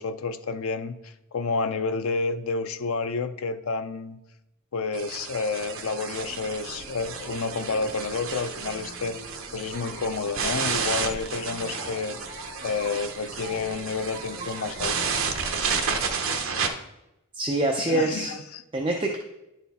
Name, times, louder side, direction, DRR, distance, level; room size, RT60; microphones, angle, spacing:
voice 1, 0.0-4.2 4.7-9.2 9.5-12.2 12.6-15.0 17.8-18.6, left 4 dB, 75° left, 10 dB, 0.5 m, -30 dB
sound 1, 4.9-16.7, right 5 dB, 70° right, 0.8 m, -31 dB
sound 2, 6.1-15.5, right 1 dB, 40° right, 1.6 m, -44 dB
voice 2, 17.3-18.3 18.7-19.2, right 2 dB, 25° right, 1 dB, 0.5 m, -25 dB
10.5 x 4.1 x 4.1 m, 0.91 s
head